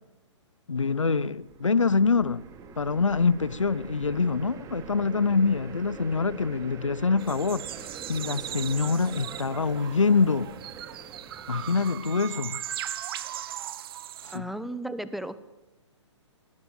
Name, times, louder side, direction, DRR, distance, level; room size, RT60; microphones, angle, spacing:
voice 1, 0.7-2.4 2.8-10.5 11.5-12.6 14.2-14.5, left 4 dB, 85° left, 1.0 m, -25 dB
sound 1, 1.1-12.5, right 5 dB, 20° right, 3.2 m, -44 dB
sound 2, 7.2-14.4, right 12 dB, 50° right, 1.4 m, -38 dB
voice 2, 14.3-15.4, right 1 dB, ahead, 1.1 m, -34 dB
21.0 x 19.5 x 9.3 m
figure-of-eight pair, 130°, 16 cm